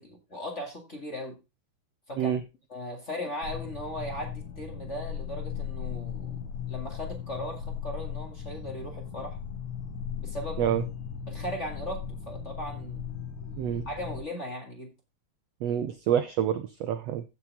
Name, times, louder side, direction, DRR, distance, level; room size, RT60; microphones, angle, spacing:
voice 1, 0.0-1.4 2.1-2.4 2.7-6.4 6.7-9.4 10.2-10.7 11.3-13.0 13.8-14.9, equal, 25° left, 2 dB, 1.8 m, -38 dB
sound 1, 3.4-14.2, left 7 dB, 75° left, 2.9 m, -37 dB
voice 2, 15.6-17.2, right 10 dB, 75° right, 11 dB, 1.5 m, -27 dB
15.0 x 6.2 x 3.5 m, 0.26 s
omnidirectional pair, 3.8 m